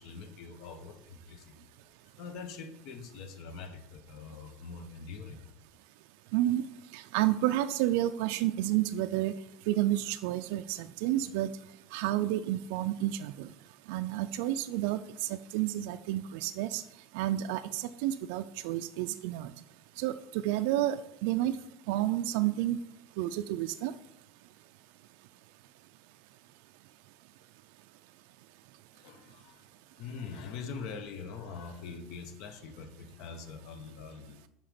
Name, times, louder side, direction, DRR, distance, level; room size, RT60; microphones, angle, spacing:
voice 1, 0.0-5.4 28.9-29.7 30.0-34.5, left 5 dB, 65° left, 9 dB, 0.9 m, -44 dB
voice 2, 6.3-6.6 6.9-9.3 9.7-11.5 11.9-13.5 13.9-16.8 17.1-19.5 20.0-21.0 21.2-21.5 21.9-22.8 23.2-23.9, right 14 dB, 75° right, 10 dB, 0.3 m, -30 dB
5.6 x 5.1 x 5.1 m, 0.79 s
supercardioid pair, 95°, 0 cm